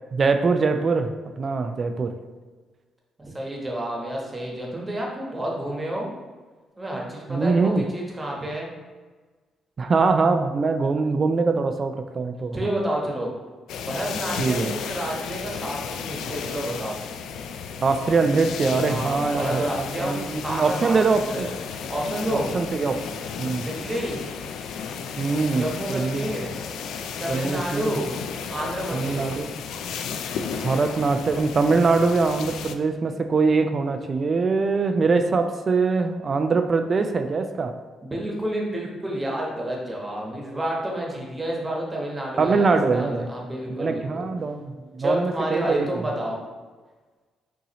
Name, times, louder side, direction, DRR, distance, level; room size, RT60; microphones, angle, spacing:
voice 1, 0.1-2.1 7.3-7.8 9.8-12.6 14.4-14.7 17.8-21.5 22.5-23.1 23.4-23.7 25.2-26.3 27.3-28.0 28.9-29.5 30.6-37.7 42.4-43.3 43.8-46.1, right 4 dB, 40° right, 7 dB, 0.3 m, -23 dB
voice 2, 3.2-6.1 6.8-8.7 12.5-13.3 13.9-17.0 18.8-21.5 21.9-22.5 23.6-24.2 25.5-26.5 27.2-28.1 28.5-29.4 38.0-44.3 45.0-46.5, right 1 dB, 20° right, -2 dB, 1.1 m, -30 dB
sound 1, 13.7-32.7, left 6 dB, 80° left, 0.3 m, -33 dB
5.5 x 2.7 x 3.0 m, 1.3 s
cardioid pair, 90°, 0 cm